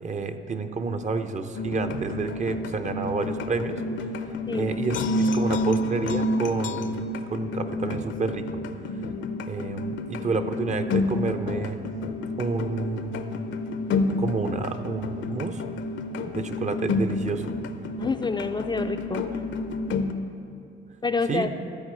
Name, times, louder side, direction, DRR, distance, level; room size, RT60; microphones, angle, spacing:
voice 1, 0.0-3.8 4.5-8.5 9.5-11.8 12.4-13.2 14.1-15.6 16.2-17.5 21.3-21.5, right 4 dB, 35° right, 8 dB, 0.7 m, -29 dB
sound 1, 1.5-20.1, left 2 dB, 70° left, 0.7 m, -29 dB
voice 2, 18.0-19.4 21.0-21.5, left 4 dB, 20° left, 6 dB, 0.4 m, -28 dB
13.0 x 4.6 x 8.7 m, 2.6 s
cardioid pair, 90°, 20 cm